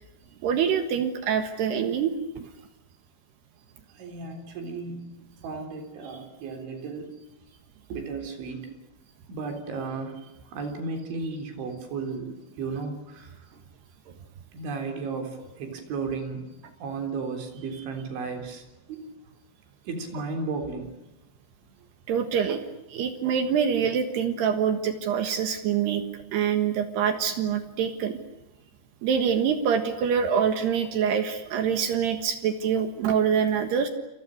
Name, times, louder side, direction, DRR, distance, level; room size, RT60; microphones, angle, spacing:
voice 1, 0.4-2.2 22.1-22.6 22.9-26.0 26.3-28.2 29.0-33.9, right 7 dB, 70° right, 8 dB, 3.4 m, -25 dB
voice 2, 4.0-5.2 5.4-7.2 7.9-8.7 9.3-10.2 10.5-13.3 14.5-16.5 16.8-18.6 18.9-19.1 19.9-20.9, right 4 dB, 85° right, 5 dB, 6.1 m, -34 dB
29.5 x 27.5 x 6.5 m, 0.96 s
omnidirectional pair, 5.2 m